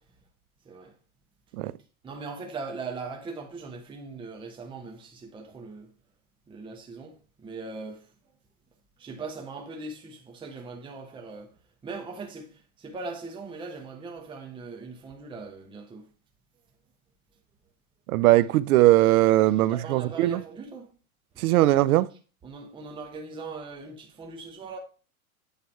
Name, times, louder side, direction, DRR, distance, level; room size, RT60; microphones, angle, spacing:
voice 1, 2.0-5.9 6.5-8.0 9.0-11.5 11.8-16.1 19.7-20.9 21.3-21.5 22.4-24.8, right 4 dB, 10° right, 0.8 m, -40 dB
voice 2, 18.1-20.4 21.4-22.1, right 15 dB, 75° right, 0.5 m, -20 dB
8.4 x 3.4 x 4.5 m
hypercardioid pair, 125°, 44 cm